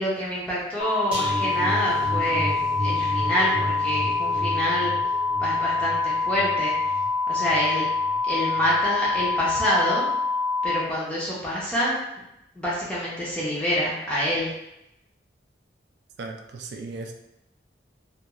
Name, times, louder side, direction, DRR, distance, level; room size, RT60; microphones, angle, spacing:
voice 1, 0.0-4.9 5.4-6.7 7.3-7.9 8.3-10.1 10.6-12.0 12.6-14.5, equal, 5° left, -7 dB, 0.5 m, -27 dB
sound 1, 0.8-10.8, left 4 dB, 70° left, 0.4 m, -25 dB
sound 2, 1.1-8.2 8.5-8.8 9.2-9.3, right 1 dB, 30° right, 0.7 m, -33 dB
voice 2, 16.2-17.1, right 3 dB, 65° right, 4 dB, 0.3 m, -36 dB
2.3 x 2.3 x 2.9 m, 0.86 s
head